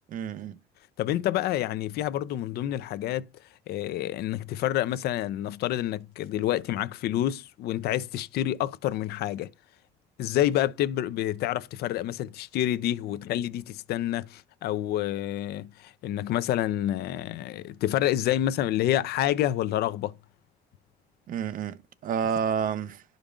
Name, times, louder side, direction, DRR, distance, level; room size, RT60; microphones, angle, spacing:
voice 1, 0.1-0.6 21.3-23.0, right 7 dB, 55° right, 0.6 m, -30 dB
voice 2, 1.0-3.2 3.7-9.5 10.2-20.2, left 13 dB, 70° left, 0.5 m, -28 dB
11.5 x 5.2 x 2.5 m
cardioid pair, 110°, 17 cm